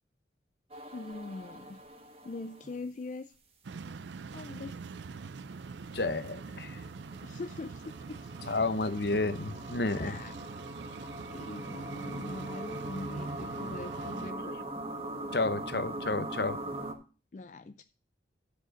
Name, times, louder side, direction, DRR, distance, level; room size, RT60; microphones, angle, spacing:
sound 1, 0.7-2.8 5.2-16.9, right 2 dB, 30° right, 1.5 m, -42 dB
voice 1, 0.9-1.8 2.2-3.3 4.3-4.8 7.2-8.3 9.9-10.3 11.3-14.6 17.3-17.8, left 3 dB, 40° left, 0.4 m, -42 dB
sound 2, 3.6-14.3, right 4 dB, 75° right, 0.5 m, -44 dB
voice 2, 5.9-6.8 8.5-10.1 15.3-16.6, left 3 dB, 60° left, 0.9 m, -31 dB
11.5 x 5.0 x 6.3 m
head